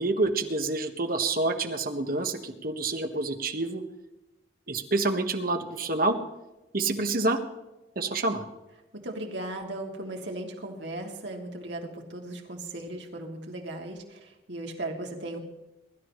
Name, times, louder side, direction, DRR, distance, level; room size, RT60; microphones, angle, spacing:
voice 1, 0.0-3.8 4.7-6.2 6.7-7.4 7.9-8.4, right 2 dB, 55° right, 6 dB, 1.5 m, -27 dB
voice 2, 8.9-15.4, right 1 dB, 75° right, 1 dB, 2.7 m, -37 dB
23.5 x 12.5 x 3.2 m, 0.97 s
head